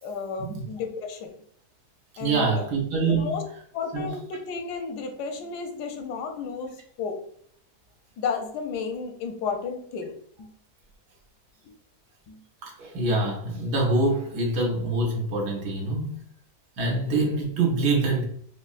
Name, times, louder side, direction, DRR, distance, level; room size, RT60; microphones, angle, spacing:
voice 1, 0.0-1.3 2.2-2.6 3.1-3.4 3.7-7.2 8.2-10.1 10.4-10.5 12.3-12.4, left 5 dB, 85° left, 4 dB, 1.2 m, -32 dB
voice 2, 2.2-3.4 3.9-4.2 12.6-16.2 16.8-18.2, right 2 dB, 85° right, 0 dB, 1.4 m, -25 dB
5.2 x 2.0 x 2.4 m, 0.63 s
omnidirectional pair, 1.7 m